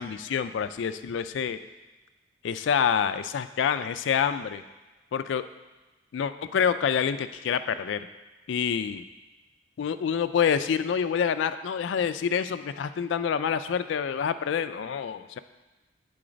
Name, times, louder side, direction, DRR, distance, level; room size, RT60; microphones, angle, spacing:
voice 1, 0.0-1.6 2.4-4.6 5.1-5.4 6.1-8.1 8.5-9.0 9.8-15.4, left 7 dB, 75° left, 11 dB, 0.3 m, -27 dB
8.7 x 3.9 x 5.0 m, 1.2 s
head